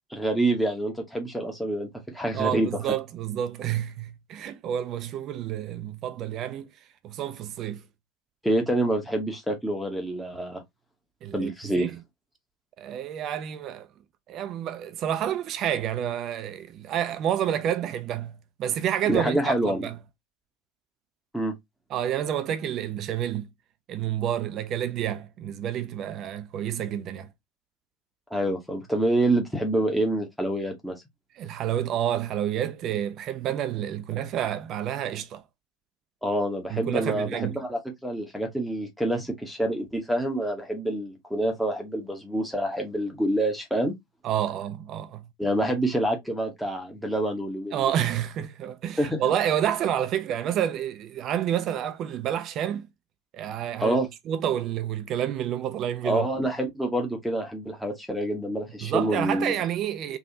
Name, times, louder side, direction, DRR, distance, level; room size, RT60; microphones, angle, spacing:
voice 1, 0.1-1.9 2.1-2.7 8.4-10.6 11.3-11.9 19.1-19.8 21.3-21.5 28.3-31.0 36.2-43.9 45.4-47.8 49.0-49.2 53.8-54.1 56.0-59.5, right 1 dB, ahead, 0.9 m, -27 dB
voice 2, 2.3-6.7 7.0-7.8 11.2-12.0 12.8-13.9 14.3-18.3 18.6-20.0 21.9-23.5 23.9-27.3 31.3-35.4 36.7-37.6 44.2-45.2 47.7-52.9 53.3-54.0 54.3-56.3 58.8-60.2, right 10 dB, 40° right, 0.4 m, -29 dB
3.4 x 2.3 x 2.7 m
figure-of-eight pair, 80°, 0 cm